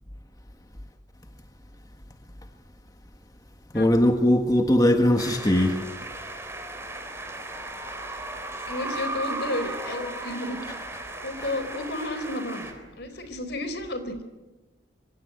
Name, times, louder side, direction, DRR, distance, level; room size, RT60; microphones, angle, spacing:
voice 1, 3.7-5.8 11.4-11.5, left 1 dB, 20° left, 5 dB, 1.6 m, -20 dB
sound 1, 5.2-12.7, right 2 dB, 15° right, 4.0 m, -36 dB
voice 2, 8.6-10.6 11.2-14.2, left 1 dB, 60° left, 10 dB, 4.1 m, -32 dB
26.0 x 24.0 x 9.4 m, 1.1 s
head